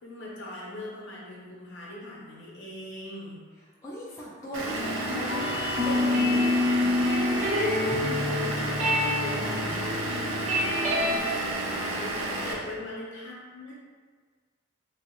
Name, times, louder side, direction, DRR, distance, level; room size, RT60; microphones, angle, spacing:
voice 1, 0.0-3.4 7.6-9.9 10.3-13.7, left 1 dB, 65° left, -4 dB, 0.7 m, -41 dB
voice 2, 3.8-7.2 12.5-12.7, equal, 15° left, -7 dB, 0.3 m, -39 dB
Vehicle / Engine, 4.5-12.5, right 1 dB, 85° right, 0.5 m, -31 dB
sound 1, 5.1-11.2, left 2 dB, 35° right, 0.6 m, -27 dB
3.4 x 2.0 x 2.9 m, 1.6 s
head